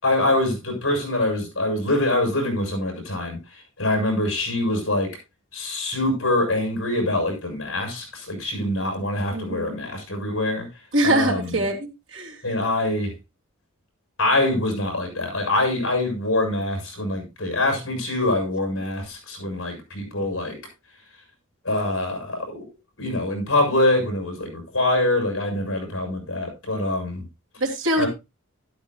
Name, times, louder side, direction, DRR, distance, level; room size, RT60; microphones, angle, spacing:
voice 1, 0.0-5.2 5.5-10.7 11.0-11.5 12.4-13.1 14.2-20.5 21.6-22.6 23.0-27.2 28.0-28.1, left 1 dB, 65° left, 6.7 m, -24 dB
voice 2, 9.3-9.7 10.9-12.4 27.6-28.1, right 1 dB, 65° right, 3.1 m, -23 dB
12.0 x 12.0 x 2.4 m
head